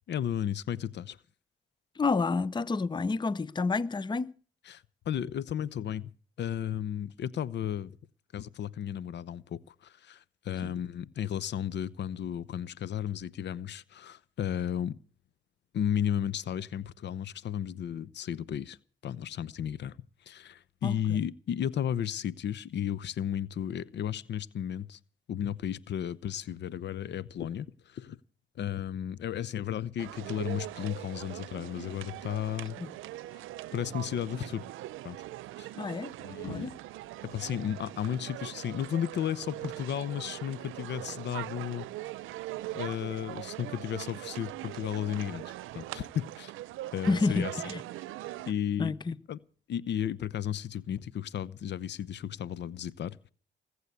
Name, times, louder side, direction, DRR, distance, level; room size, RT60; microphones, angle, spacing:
voice 1, 0.1-1.2 4.6-6.1 6.4-8.0 8.3-15.0 15.7-18.8 19.0-20.0 20.2-25.0 25.3-28.2 28.6-32.8 33.3-33.5 33.7-34.6 35.0-35.2 35.6-35.7 36.2-36.7 37.2-41.9 42.7-46.5 46.9-47.5 48.5-48.9 49.3-49.4 49.7-53.3, left 10 dB, 60° left, 0.8 m, -34 dB
voice 2, 2.0-4.3 10.6-10.7 20.8-21.0 35.8-36.1 36.4-36.7 47.1-47.8 48.8-49.1, left 4 dB, 20° left, 0.7 m, -29 dB
sound 1, 30.0-48.5, right 16 dB, 90° right, 0.7 m, -41 dB
20.5 x 8.1 x 8.2 m
cardioid pair, 90°, 20 cm